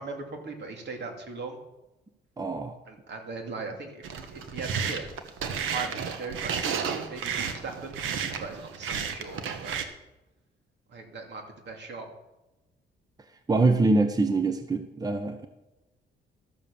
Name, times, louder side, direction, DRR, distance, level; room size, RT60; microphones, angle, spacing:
voice 1, 0.0-1.6 2.9-4.0 4.3-5.1 5.6-8.0 8.4-9.8 10.9-12.1, right 4 dB, 60° right, 3 dB, 2.6 m, -39 dB
voice 2, 2.4-2.8 13.5-15.5, right 3 dB, 20° right, 9 dB, 0.9 m, -24 dB
sound 1, 4.0-9.8, right 6 dB, 85° right, 1.2 m, -32 dB
13.0 x 7.4 x 7.0 m, 1.0 s
cardioid pair, 90°, 20 cm